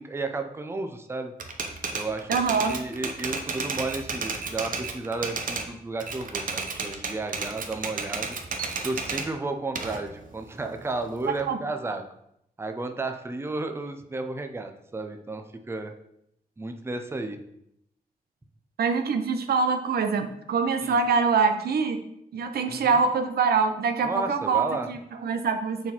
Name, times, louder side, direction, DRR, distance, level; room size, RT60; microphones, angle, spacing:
voice 1, 0.0-1.3 1.9-2.4 2.6-8.4 8.8-12.0 12.6-15.9 16.6-17.4 20.8-21.0 22.7-23.0 24.0-24.9, right 3 dB, 15° right, 6 dB, 0.5 m, -33 dB
Typewriter, 1.4-5.7 6.0-9.3 9.8-11.4, right 4 dB, 60° right, 0.8 m, -32 dB
voice 2, 2.3-2.8 11.5-11.6 18.8-22.0 22.3-25.9, right 5 dB, 90° right, 7 dB, 0.7 m, -24 dB
6.7 x 4.1 x 4.3 m, 0.76 s
wide cardioid pair, 125°, 16 cm